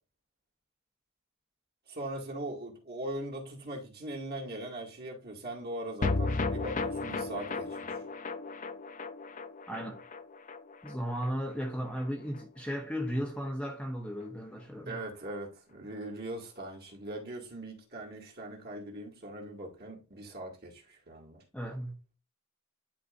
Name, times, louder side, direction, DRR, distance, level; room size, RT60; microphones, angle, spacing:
voice 1, 1.9-8.0 14.9-21.4, right 1 dB, 45° right, 2.1 m, -40 dB
sound 1, 6.0-12.4 12.7-12.8 13.1-13.2, left 3 dB, 35° left, 0.5 m, -35 dB
voice 2, 9.7-10.0 10.8-15.0 21.5-22.0, equal, 5° left, 0.8 m, -35 dB
11.0 x 4.0 x 2.5 m
head